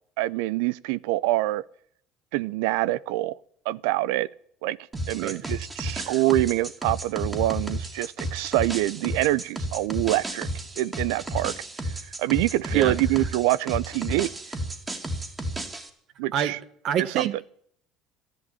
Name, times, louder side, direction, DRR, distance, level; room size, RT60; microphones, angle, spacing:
voice 1, 0.2-1.6 2.3-3.4 3.7-4.3 4.6-4.8 5.1-10.5 10.8-11.5 12.2-14.3 16.2-16.6 17.0-17.3, right 17 dB, 80° right, 0.5 m, -25 dB
sound 1, 4.9-15.9, right 1 dB, 25° right, 2.9 m, -32 dB
voice 2, 16.8-17.4, right 9 dB, 55° right, 1.5 m, -27 dB
13.0 x 11.0 x 8.8 m
hypercardioid pair, 80°, 0 cm